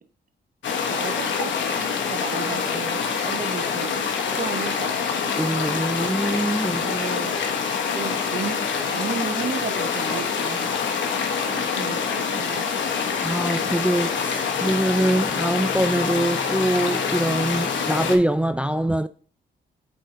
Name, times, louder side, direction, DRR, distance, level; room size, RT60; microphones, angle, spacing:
sound 1, 0.6-18.2, left 6 dB, 75° left, 1.0 m, -26 dB
voice 1, 0.9-1.6 2.1-4.9 6.8-7.4 7.9-8.6 8.8-10.7 11.5-12.7, right 5 dB, 50° right, 1.0 m, -33 dB
voice 2, 5.4-6.8 13.2-19.1, right 1 dB, 5° right, 0.4 m, -23 dB
7.8 x 4.2 x 3.7 m
cardioid pair, 60°, 19 cm